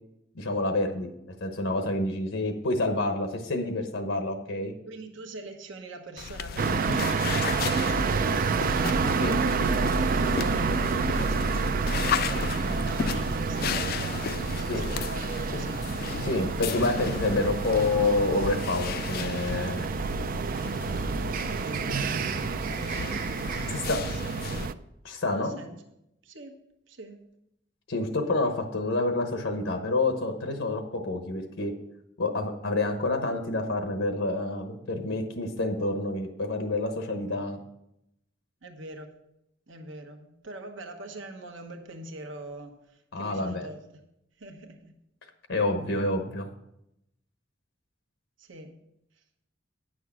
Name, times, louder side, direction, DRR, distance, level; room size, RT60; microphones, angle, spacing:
voice 1, 0.3-1.1 1.4-4.7 9.2-9.4 14.7-14.9 16.2-19.9 23.7-24.0 25.0-25.6 27.9-31.7 32.2-37.6 43.1-43.7 45.5-46.5, left 2 dB, 80° left, 5 dB, 1.1 m, -28 dB
voice 2, 4.9-16.4 20.8-21.3 21.6-21.9 22.7-23.2 23.6-24.7 25.3-25.8 26.2-26.6 26.9-27.2 38.6-39.1 39.7-44.0 44.4-45.0 48.4-48.8, right 2 dB, 75° right, 4 dB, 1.1 m, -43 dB
sound 1, 6.2-24.7, left 7 dB, 50° left, 0.3 m, -35 dB
sound 2, 6.6-24.7, right 4 dB, 45° right, 0.4 m, -28 dB
9.5 x 6.4 x 6.0 m, 0.83 s
head